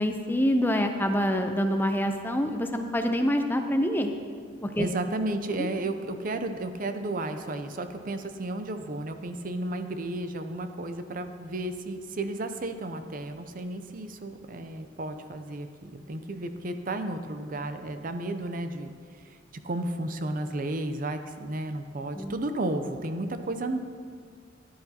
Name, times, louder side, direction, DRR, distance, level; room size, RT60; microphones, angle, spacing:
voice 1, 0.0-4.1 4.6-4.9 5.6-5.7 22.1-22.4, equal, 10° left, 5 dB, 0.5 m, -26 dB
voice 2, 4.8-19.4 19.6-23.8, right 2 dB, 45° right, 8 dB, 0.5 m, -33 dB
14.5 x 10.5 x 2.8 m, 2.1 s
head